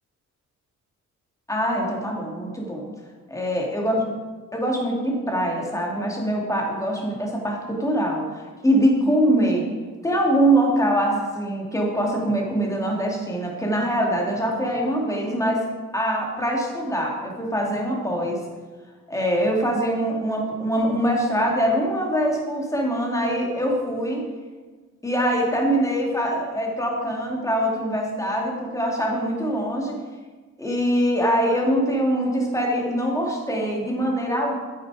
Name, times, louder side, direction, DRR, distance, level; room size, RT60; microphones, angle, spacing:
voice 1, 1.5-2.9 3.3-4.0 4.5-9.7 10.0-15.6 15.9-18.4 19.1-24.3 25.0-30.0 30.6-34.6, equal, 10° left, -1 dB, 2.3 m, -23 dB
9.0 x 8.7 x 4.9 m, 1.4 s
cardioid pair, 120°, 29 cm